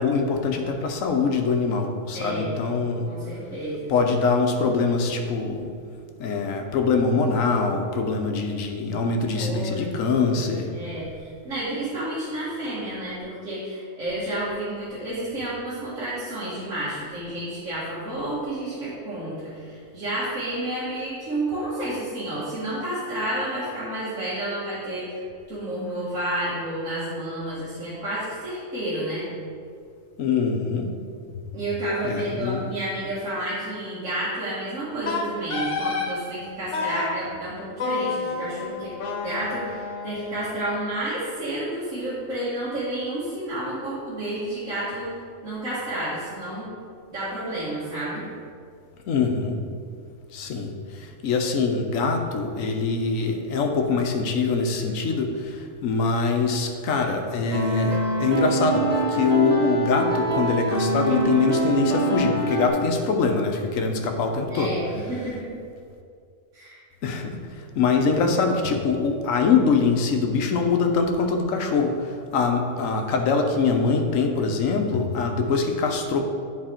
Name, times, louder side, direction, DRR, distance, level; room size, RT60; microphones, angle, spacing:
voice 1, 0.0-3.1 3.9-5.7 6.2-10.7 30.2-30.9 32.0-32.6 49.1-49.6 50.3-64.8 67.0-67.4 67.8-76.2, left 4 dB, 85° left, 4 dB, 1.2 m, -23 dB
voice 2, 2.1-2.5 3.0-3.9 9.3-29.3 31.5-38.9 39.2-45.1 45.4-46.7 47.1-48.2 64.5-65.5 66.5-66.8, right 1 dB, 75° right, -12 dB, 2.1 m, -30 dB
Wind instrument woodwind instrument, 35.1-36.2 36.7-37.2 37.8-40.8, left 4 dB, 65° left, 1.3 m, -29 dB
sound 1, 57.5-62.7, right 2 dB, 35° right, 0.8 m, -24 dB
9.9 x 4.1 x 4.4 m, 2.2 s
omnidirectional pair, 1.3 m